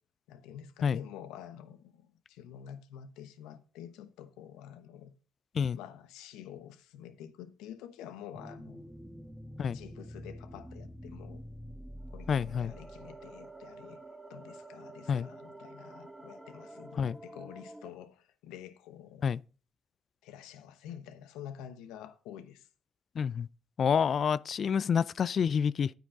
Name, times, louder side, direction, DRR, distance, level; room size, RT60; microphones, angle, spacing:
voice 1, 0.3-5.1 5.7-8.9 9.7-11.4 12.1-14.0 14.3-19.3 20.2-22.7, left 10 dB, 85° left, 1.0 m, -48 dB
sound 1, 8.3-17.9, right 1 dB, 10° right, 1.3 m, -47 dB
voice 2, 12.3-12.7 15.1-15.3 17.0-17.2 19.2-19.4 23.2-23.5 23.8-25.9, left 7 dB, 55° left, 0.3 m, -28 dB
9.3 x 9.0 x 3.6 m
supercardioid pair, 65°, 0 cm